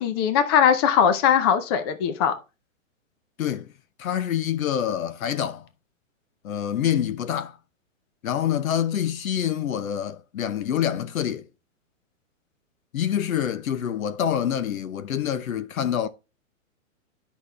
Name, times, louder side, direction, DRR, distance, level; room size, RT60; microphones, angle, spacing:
voice 1, 0.0-2.3, left 8 dB, 20° left, 0.5 m, -20 dB
voice 2, 3.4-3.7 4.0-5.7 6.4-7.6 8.2-11.5 12.9-16.1, left 9 dB, 85° left, 1.1 m, -26 dB
10.0 x 6.0 x 3.3 m
hypercardioid pair, 160°, 41 cm